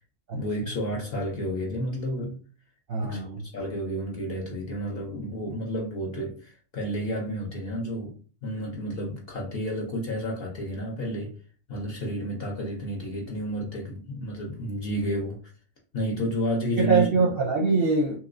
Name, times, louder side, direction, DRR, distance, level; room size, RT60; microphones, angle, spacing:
voice 1, 0.3-2.4 3.0-3.2 3.5-11.4 11.7-15.4 15.9-17.1, equal, 55° left, 0.7 m, -31 dB
voice 2, 2.9-3.4 16.8-18.2, right 4 dB, 60° right, 0.6 m, -23 dB
3.0 x 2.9 x 2.5 m
omnidirectional pair, 1.5 m